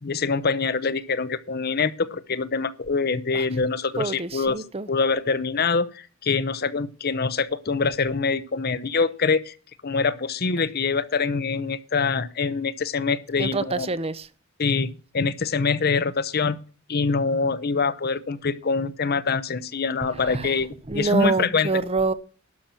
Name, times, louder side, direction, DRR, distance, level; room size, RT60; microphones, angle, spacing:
voice 1, 0.0-9.5 9.8-13.9 14.6-16.6 16.9-21.7, left 4 dB, 50° left, 0.8 m, -25 dB
voice 2, 4.0-4.9 13.4-14.3 20.3-20.5 20.9-22.1, right 3 dB, 30° right, 0.7 m, -26 dB
12.0 x 6.0 x 7.4 m
head